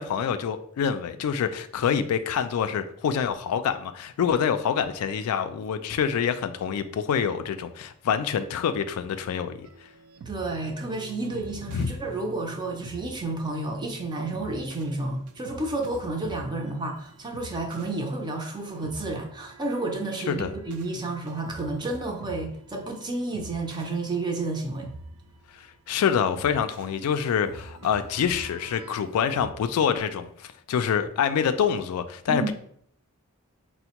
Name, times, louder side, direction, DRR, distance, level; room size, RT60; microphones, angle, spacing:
voice 1, 0.0-9.7 11.7-11.9 20.3-20.5 25.6-32.5, left 7 dB, 80° left, 9 dB, 0.3 m, -26 dB
sound 1, 9.6-29.5, right 2 dB, 75° right, 0.3 m, -46 dB
voice 2, 10.2-24.9 32.3-32.5, right 2 dB, 20° right, 2 dB, 0.5 m, -31 dB
4.2 x 2.1 x 2.9 m, 0.64 s
head